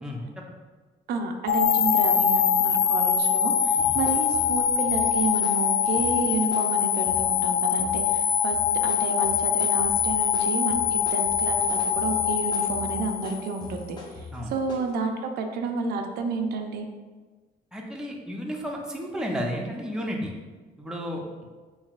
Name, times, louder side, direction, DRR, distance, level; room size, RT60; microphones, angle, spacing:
voice 1, 0.0-0.4 3.8-4.0 14.3-14.5 17.7-20.3 20.8-21.2, equal, 5° right, -1 dB, 0.5 m, -32 dB
voice 2, 1.1-16.9, right 4 dB, 70° right, 4 dB, 0.5 m, -31 dB
sound 1, 1.5-13.7, left 8 dB, 80° left, 0.4 m, -23 dB
sound 2, 3.2-3.4 3.8-7.4 7.8-8.2 8.5-14.9, left 2 dB, 25° left, 0.8 m, -42 dB
5.4 x 2.7 x 2.4 m, 1.4 s
cardioid pair, 110°, 17 cm